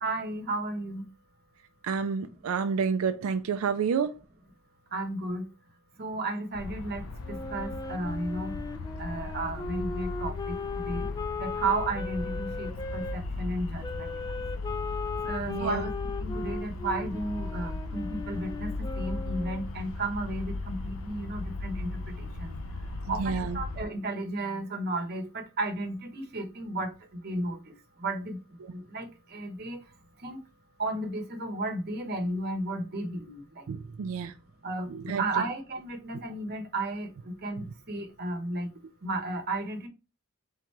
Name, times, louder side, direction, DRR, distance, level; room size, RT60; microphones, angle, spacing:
voice 1, 0.0-1.1 4.9-5.5 6.0-8.6 9.0-11.1 11.4-14.4 15.2-15.9 16.2-29.9 30.2-30.4 30.8-33.7 34.6-39.9, right 2 dB, 50° right, 1.1 m, -34 dB
voice 2, 1.8-4.2 15.5-15.9 23.2-23.6 28.6-28.7 33.7-34.3 34.9-35.2 37.6-37.7, right 6 dB, 80° right, 0.4 m, -29 dB
sound 1, 6.5-23.8, left 3 dB, 85° left, 0.6 m, -37 dB
Wind instrument woodwind instrument, 7.2-13.2 13.8-19.7, left 4 dB, 20° left, 0.3 m, -37 dB
3.7 x 3.0 x 4.5 m
head